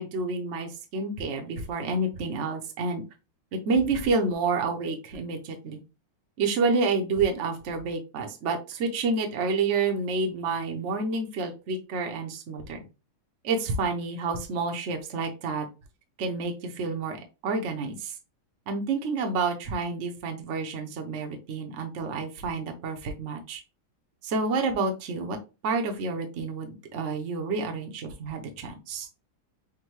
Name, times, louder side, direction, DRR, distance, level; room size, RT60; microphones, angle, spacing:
voice 1, 0.0-3.0 3.5-5.8 6.4-12.8 13.4-15.7 16.2-17.2 17.4-18.2 18.7-23.6 24.2-25.4 25.6-29.1, right 4 dB, 75° right, 4 dB, 0.6 m, -29 dB
6.2 x 2.2 x 3.1 m, 0.29 s
omnidirectional pair, 2.3 m